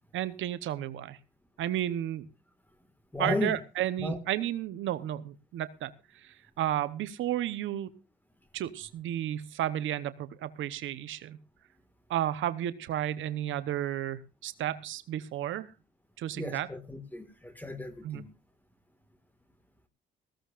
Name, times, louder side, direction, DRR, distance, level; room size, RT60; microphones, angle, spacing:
voice 1, 0.1-1.2 1.6-2.3 3.2-7.9 8.5-11.4 12.1-15.7 16.2-16.7 18.0-18.2, right 12 dB, 80° right, 0.9 m, -32 dB
voice 2, 3.1-3.6 4.0-4.2 16.3-18.3, left 2 dB, 10° left, 1.8 m, -34 dB
19.0 x 15.5 x 2.5 m
cardioid pair, 90°, 20 cm